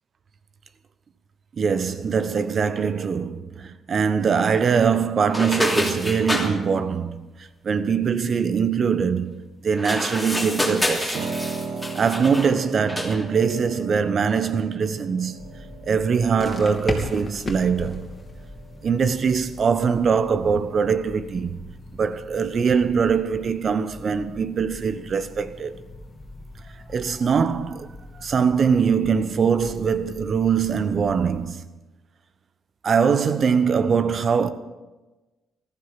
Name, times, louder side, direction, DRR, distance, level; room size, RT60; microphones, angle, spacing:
voice 1, 1.6-11.3 11.9-15.4 15.8-18.1 18.8-21.7 21.9-25.8 26.9-27.9 28.2-31.7 32.8-34.5, right 6 dB, 50° right, 1.0 m, -22 dB
sound 1, 5.3-6.5 9.7-12.5 12.9-13.2, left 1 dB, 5° left, 3.0 m, -27 dB
Piano, 11.1-21.1, right 4 dB, 65° right, 1.6 m, -38 dB
sound 2, 15.4-31.5, left 2 dB, 25° left, 2.8 m, -39 dB
15.0 x 13.5 x 5.9 m
cardioid pair, 90°, 0 cm